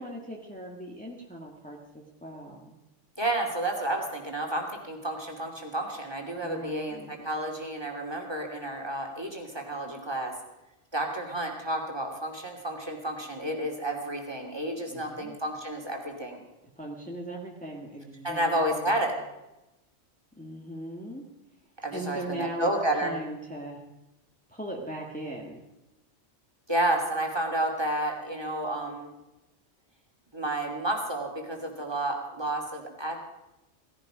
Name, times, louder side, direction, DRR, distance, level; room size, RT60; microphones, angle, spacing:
voice 1, 0.0-2.7 6.4-7.1 14.9-15.4 16.8-19.0 20.4-21.2 21.9-23.8 24.5-25.6, right 1 dB, 5° left, -2 dB, 1.8 m, -39 dB
voice 2, 3.2-10.3 10.9-16.4 18.2-19.1 21.8-23.1 26.7-29.1 30.3-33.2, right 1 dB, 20° right, 1 dB, 2.8 m, -31 dB
17.5 x 16.0 x 5.1 m, 0.96 s
omnidirectional pair, 1.2 m